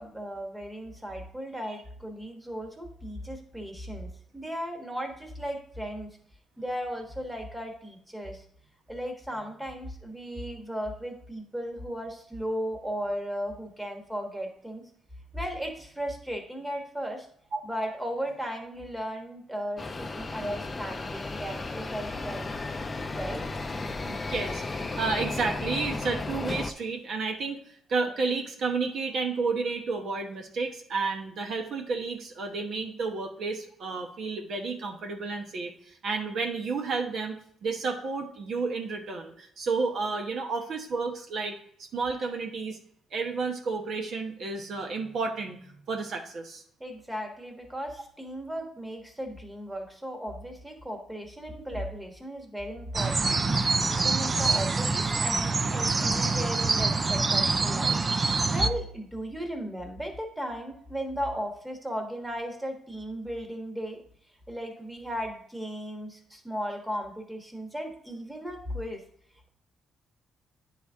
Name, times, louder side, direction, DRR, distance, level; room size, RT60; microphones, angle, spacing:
voice 1, 0.0-6.1 6.6-8.4 8.9-14.8 15.3-17.3 17.6-22.5 23.1-23.4 46.8-53.4 53.8-58.0 58.4-64.0 64.5-69.0, equal, 5° right, 3 dB, 1.3 m, -36 dB
sound 1, 19.8-26.7, left 3 dB, 25° left, 0.6 m, -34 dB
voice 2, 24.1-37.3 37.6-42.8 43.1-46.6, right 4 dB, 65° right, 3 dB, 1.0 m, -31 dB
sound 2, 52.9-58.7, right 3 dB, 30° right, 0.4 m, -25 dB
9.4 x 4.1 x 3.5 m, 0.63 s
cardioid pair, 90°, 0 cm